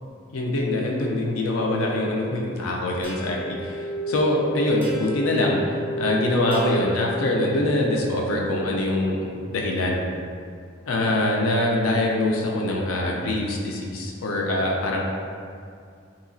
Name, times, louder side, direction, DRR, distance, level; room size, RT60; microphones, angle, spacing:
voice 1, 0.3-10.0 10.9-15.0, left 1 dB, 85° left, -1 dB, 0.5 m, -24 dB
sound 1, 3.0-7.8, right 1 dB, 10° left, 0.5 m, -31 dB
2.9 x 2.7 x 2.6 m, 2.3 s
head